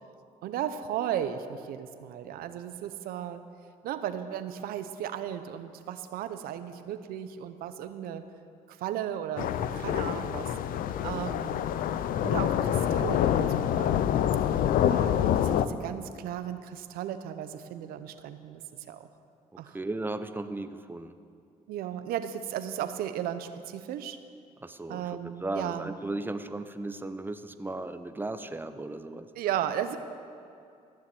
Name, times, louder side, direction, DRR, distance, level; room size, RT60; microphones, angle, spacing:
voice 1, 0.4-3.4 3.8-8.2 8.7-10.5 11.0-11.7 12.2-14.2 14.9-18.6 18.9-19.1 19.6-19.8 21.7-24.2 24.9-26.0 29.4-30.0, right 10 dB, 75° right, 10 dB, 0.8 m, -35 dB
sound 1, 9.4-15.7, left 10 dB, 65° left, 0.6 m, -26 dB
voice 2, 19.7-21.1 24.6-29.3, right 2 dB, 15° right, 10 dB, 0.8 m, -36 dB
14.5 x 7.0 x 7.9 m, 2.4 s
supercardioid pair, 70°, 15 cm